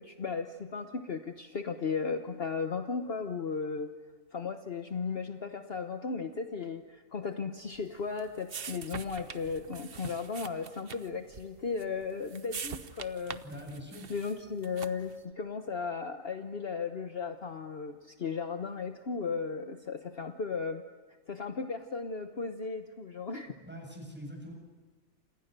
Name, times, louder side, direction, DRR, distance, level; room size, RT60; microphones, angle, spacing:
voice 1, 0.0-3.9 4.3-13.4 14.1-20.8 21.3-23.5, left 5 dB, 50° left, 6 dB, 1.3 m, -35 dB
sound 1, 7.7-15.2, right 6 dB, 50° right, 1.1 m, -44 dB
voice 2, 13.4-14.1 23.6-24.5, equal, 10° right, 1 dB, 8.0 m, -43 dB
29.0 x 27.5 x 6.8 m, 1.4 s
omnidirectional pair, 1.4 m